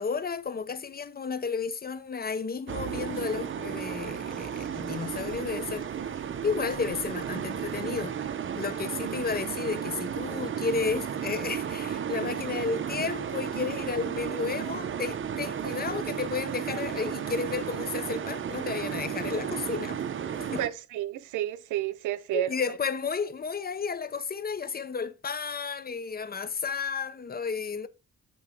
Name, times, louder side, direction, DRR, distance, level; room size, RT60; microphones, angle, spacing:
voice 1, 0.0-5.9 6.4-8.2 8.6-20.0 20.4-20.6 22.3-27.9, left 5 dB, 30° left, 0.8 m, -32 dB
sound 1, 2.7-20.7, right 8 dB, 40° right, 0.8 m, -33 dB
voice 2, 20.6-22.6, right 13 dB, 85° right, 0.8 m, -31 dB
9.0 x 4.1 x 4.4 m
cardioid pair, 90°, 30 cm